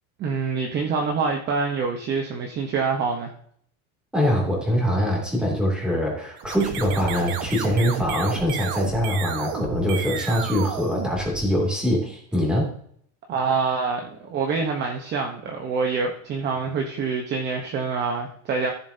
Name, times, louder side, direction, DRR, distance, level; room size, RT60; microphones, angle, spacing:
voice 1, 0.2-3.3 13.3-18.7, right 5 dB, 30° right, 3 dB, 0.9 m, -26 dB
voice 2, 4.1-12.7, equal, ahead, -2 dB, 2.6 m, -23 dB
sound 1, 6.4-11.8, right 7 dB, 50° right, 1.3 m, -32 dB
14.5 x 7.2 x 2.8 m, 0.63 s
cardioid pair, 165°, 38 cm